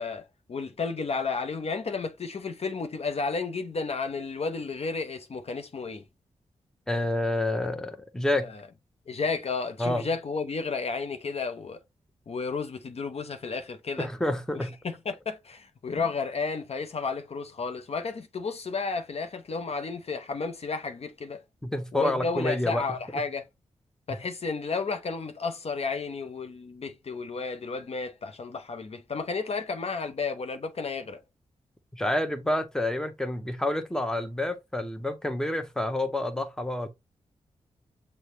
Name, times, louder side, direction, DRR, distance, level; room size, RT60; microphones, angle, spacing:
voice 1, 0.0-6.0 8.3-8.6 9.1-11.8 12.3-14.1 14.5-21.4 21.9-23.4 24.1-31.2, left 4 dB, 50° left, 0.6 m, -32 dB
voice 2, 6.9-8.5 9.8-10.0 14.0-14.8 21.6-22.8 31.9-36.9, left 1 dB, 5° left, 0.7 m, -28 dB
6.4 x 2.1 x 3.0 m
supercardioid pair, 45°, 13 cm